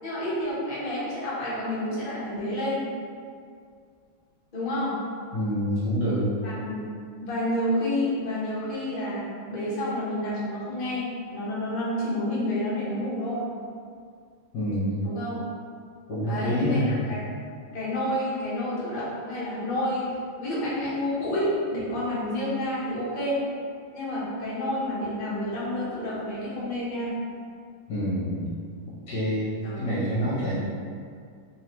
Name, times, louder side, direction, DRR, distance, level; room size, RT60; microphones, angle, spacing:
voice 1, 0.0-2.8 4.5-5.0 6.4-6.7 7.2-13.5 15.0-15.4 16.3-17.2 17.7-20.1 20.4-23.4 23.9-27.1 29.6-29.8, left 1 dB, 35° left, -9 dB, 0.8 m, -29 dB
voice 2, 5.3-6.3 14.5-15.0 16.1-17.0 27.9-28.5 29.1-30.6, equal, 60° left, -10 dB, 1.3 m, -27 dB
3.7 x 3.1 x 2.9 m, 2.2 s
omnidirectional pair, 2.2 m